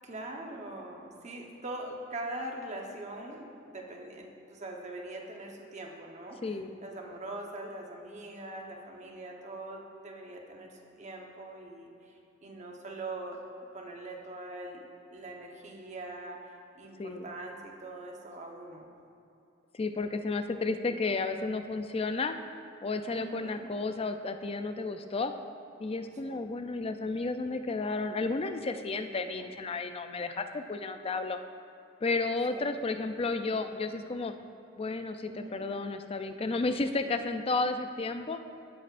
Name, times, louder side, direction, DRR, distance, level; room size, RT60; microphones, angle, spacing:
voice 1, 0.0-13.4 13.7-18.9 23.1-23.7 26.2-26.4 29.2-29.5 32.5-32.7 35.3-35.6, right 2 dB, 35° right, 1 dB, 1.0 m, -42 dB
voice 2, 6.4-6.7 17.0-17.3 19.7-22.4 22.8-25.3 25.8-31.4 32.0-34.3 34.8-38.4, left 3 dB, 30° left, 8 dB, 0.4 m, -32 dB
16.5 x 7.6 x 2.5 m, 2.8 s
head